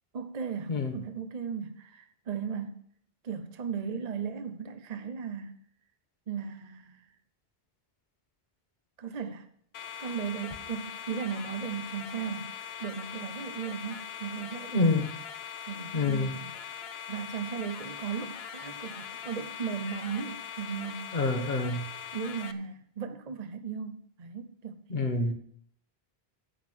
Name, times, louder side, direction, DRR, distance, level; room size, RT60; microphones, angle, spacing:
voice 1, 0.1-2.8 3.2-5.6 6.3-7.1 9.0-9.5 10.0-12.5 12.8-15.0 15.7-16.5 17.1-21.2 22.1-24.8, right 6 dB, 45° right, 8 dB, 0.8 m, -36 dB
voice 2, 0.7-1.0 14.7-15.1 15.9-16.3 21.1-21.9 24.9-25.3, left 3 dB, 50° left, 5 dB, 1.4 m, -27 dB
HF radio data, 9.7-22.5, left 8 dB, 75° left, 1.1 m, -41 dB
10.0 x 7.9 x 6.1 m, 0.65 s
omnidirectional pair, 1.0 m